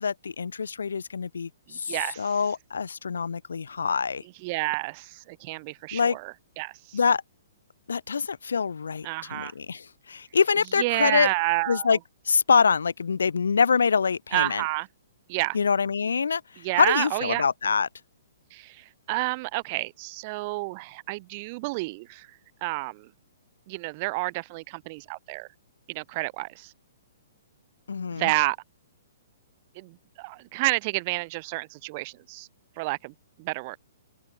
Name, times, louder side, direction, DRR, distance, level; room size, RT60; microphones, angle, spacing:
voice 1, 0.0-4.2 5.9-6.2 6.9-7.2 7.9-11.3 11.7-12.0 12.3-14.6 15.5-16.4 16.7-17.9 27.9-28.3, left 5 dB, 75° left, 2.7 m, -25 dB
voice 2, 1.7-2.3 4.4-7.0 9.0-9.5 10.8-12.0 14.3-14.9 15.3-15.6 16.6-17.4 18.5-22.3 22.6-23.1 23.7-25.5 25.9-26.7 28.1-28.6 29.7-32.5 32.8-33.1 33.4-33.8, right 25 dB, 40° right, 1.3 m, -30 dB
figure-of-eight pair, 125°, 0 cm